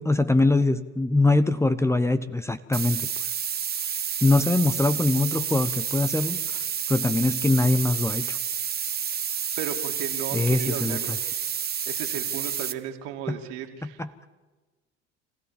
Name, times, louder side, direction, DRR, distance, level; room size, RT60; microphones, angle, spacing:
voice 1, 0.0-3.1 4.2-8.4 10.3-11.2 13.3-13.4 13.8-14.1, left 2 dB, 10° left, 12 dB, 0.9 m, -23 dB
sound 1, 2.7-12.7, right 8 dB, 30° right, 1.2 m, -30 dB
voice 2, 9.6-11.2 11.9-14.0, right 9 dB, 65° right, 5 dB, 2.8 m, -35 dB
26.0 x 16.5 x 7.3 m, 1.2 s
hypercardioid pair, 70°, 34 cm